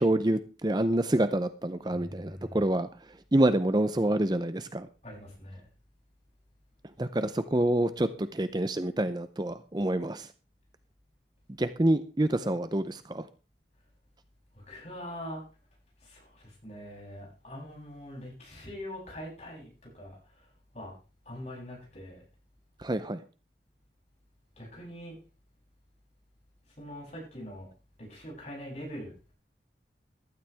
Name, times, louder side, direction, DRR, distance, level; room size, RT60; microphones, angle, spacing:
voice 1, 0.0-2.9 3.3-4.9 7.0-10.3 11.6-13.3 22.8-23.2, right 1 dB, 25° right, 0.6 m, -27 dB
voice 2, 1.8-2.7 5.0-5.7 14.5-15.4 16.0-20.5 20.7-21.0 21.3-22.2 24.5-25.2 26.8-27.7 28.0-29.1, equal, 40° left, 7.9 m, -43 dB
15.0 x 12.5 x 3.5 m
head